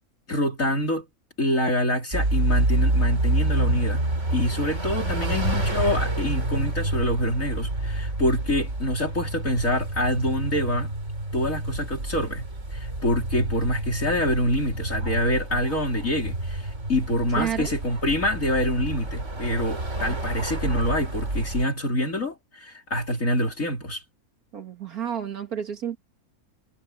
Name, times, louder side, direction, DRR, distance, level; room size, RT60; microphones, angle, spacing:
voice 1, 0.3-1.1 1.4-4.0 4.3-10.9 11.3-24.0, left 1 dB, 65° left, 4.5 m, -26 dB
sound 1, 2.1-21.7, right 2 dB, 55° right, 4.6 m, -28 dB
voice 2, 5.0-5.5 17.4-17.7 20.1-20.2 24.5-26.0, right 8 dB, 80° right, 2.5 m, -31 dB
omnidirectional pair, 1.5 m